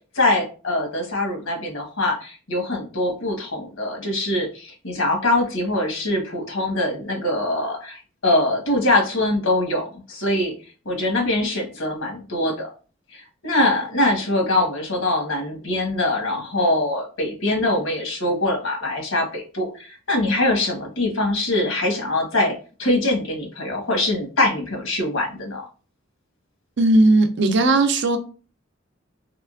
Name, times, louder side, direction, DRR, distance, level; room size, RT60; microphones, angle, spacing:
voice 1, 0.1-10.5 10.8-12.7 13.1-25.7, left 1 dB, 85° left, 1.2 m, -23 dB
voice 2, 26.8-28.2, right 2 dB, 65° right, 0.5 m, -17 dB
3.6 x 3.2 x 2.4 m
head